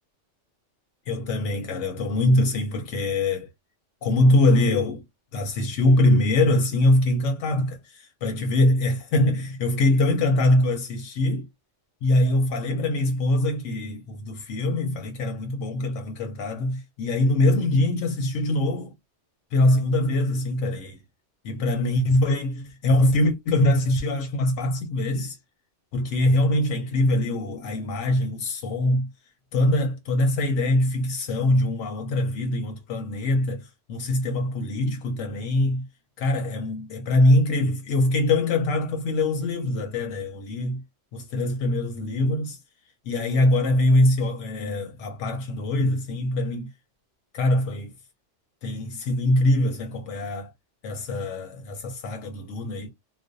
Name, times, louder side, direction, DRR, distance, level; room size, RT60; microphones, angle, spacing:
voice 1, 1.1-3.5 4.0-5.0 5.3-11.5 12.0-18.9 19.5-20.9 21.5-25.4 25.9-29.1 29.5-35.8 36.2-40.8 41.1-42.6 43.1-46.7 47.3-47.9 48.6-50.5 50.8-52.9, left 1 dB, 85° left, 0.9 m, -23 dB
2.4 x 2.1 x 2.4 m
omnidirectional pair, 1.2 m